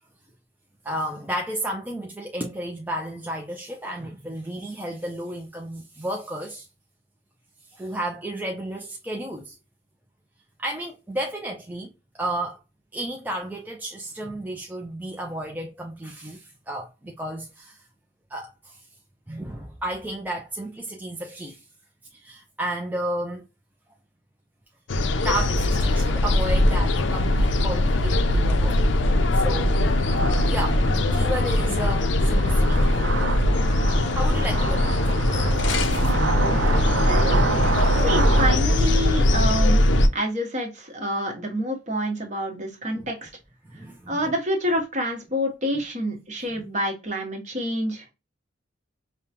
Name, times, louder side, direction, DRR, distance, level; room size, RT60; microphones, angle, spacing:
voice 1, 0.8-6.7 7.7-9.6 10.6-12.6 12.9-17.8 18.3-18.8 19.3-21.6 22.1-23.5 25.2-28.9 29.3-29.9 30.5-33.1 33.5-33.8 34.1-35.4 37.8-38.0 42.9-43.1 43.7-44.2 46.5-46.7, right 1 dB, 10° right, 0.4 m, -32 dB
sound 1, 24.9-40.1, left 1 dB, 70° left, 0.5 m, -21 dB
sound 2, 27.0-38.6, right 3 dB, 80° right, 0.6 m, -30 dB
voice 2, 36.5-37.4 38.0-39.9 40.1-43.3 44.1-48.1, equal, 40° right, 1.1 m, -28 dB
5.3 x 2.2 x 2.8 m
head